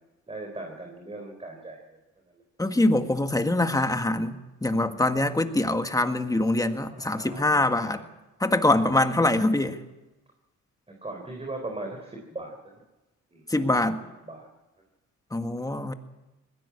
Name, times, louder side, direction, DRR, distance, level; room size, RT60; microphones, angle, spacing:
voice 1, 0.3-1.8 6.9-8.0 11.0-12.6 13.3-13.4 14.2-14.5, right 2 dB, 20° right, 2 dB, 3.9 m, -38 dB
voice 2, 2.6-8.0 8.4-9.8 13.5-14.0 15.3-15.9, left 2 dB, 10° left, 7 dB, 1.7 m, -24 dB
20.5 x 16.0 x 8.7 m, 1.1 s
cardioid pair, 90°, 30 cm